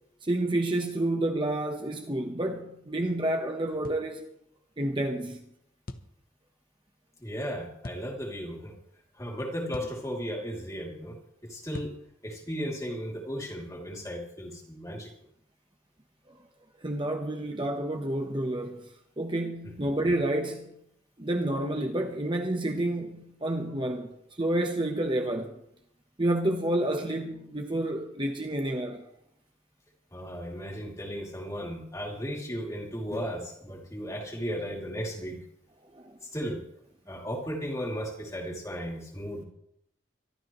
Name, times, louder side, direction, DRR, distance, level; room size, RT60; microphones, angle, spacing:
voice 1, 0.2-4.3 4.8-5.4 16.8-20.8 21.2-25.5 26.2-29.1 35.9-36.2, right 1 dB, 25° right, 1.0 m, -29 dB
sound 1, 3.8-4.1 5.9-6.1 7.8-8.1 9.7-10.0 11.7-12.0, left 2 dB, 50° left, 0.8 m, -41 dB
voice 2, 7.2-8.7 9.2-11.9 12.2-15.1 30.1-35.4 36.2-36.6 37.1-39.4, equal, 15° left, 2.7 m, -35 dB
24.5 x 12.5 x 3.1 m
head